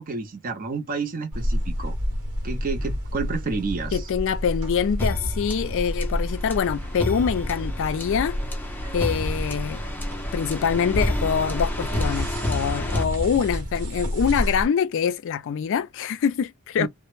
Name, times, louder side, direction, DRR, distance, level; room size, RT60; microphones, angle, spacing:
voice 1, 0.0-2.0 2.4-4.1 16.8-16.9, right 4 dB, 40° right, 0.5 m, -30 dB
sound 1, 1.3-14.7, equal, 85° right, 0.9 m, -30 dB
voice 2, 3.9-8.4 8.9-9.8 10.3-16.9, left 7 dB, 60° left, 0.3 m, -25 dB
sound 2, 5.0-13.8, left 1 dB, 10° left, 0.5 m, -31 dB
2.0 x 2.0 x 3.0 m
head